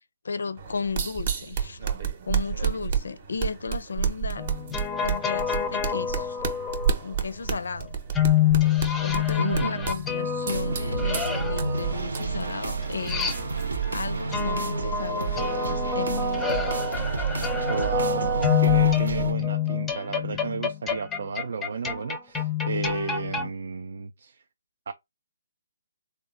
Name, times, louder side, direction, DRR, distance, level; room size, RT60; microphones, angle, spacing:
voice 1, 0.2-1.8 2.3-4.5 5.0-6.5 7.0-8.0 9.0-13.3 13.6-16.7, left 5 dB, 75° left, 0.4 m, -34 dB
sound 1, 0.6-14.3, right 7 dB, 45° right, 0.7 m, -32 dB
sound 2, 4.4-6.9 8.1-13.8 14.3-23.5, left 7 dB, 10° left, 0.5 m, -27 dB
voice 2, 9.4-9.9 17.7-24.4 24.9-25.0, right 5 dB, 65° right, 0.4 m, -32 dB
sound 3, 10.5-19.3, right 4 dB, 80° right, 0.7 m, -30 dB
3.6 x 2.2 x 2.4 m
hypercardioid pair, 150°, 0 cm